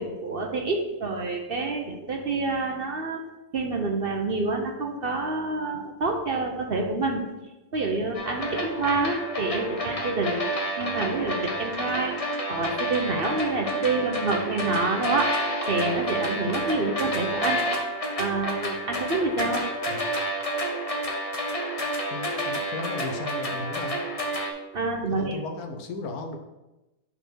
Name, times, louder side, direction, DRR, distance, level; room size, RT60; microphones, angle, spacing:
voice 1, 0.0-3.2 3.5-7.3 7.7-10.4 10.8-12.2 12.5-15.4 15.7-17.7 18.2-19.7 24.7-25.4, right 3 dB, 50° right, 2 dB, 0.9 m, -27 dB
sound 1, 8.1-24.5, equal, 30° left, 0.9 m, -29 dB
voice 2, 22.1-24.0 25.1-26.4, left 3 dB, 80° left, 5 dB, 1.3 m, -35 dB
5.7 x 4.3 x 6.1 m, 1.0 s
omnidirectional pair, 1.5 m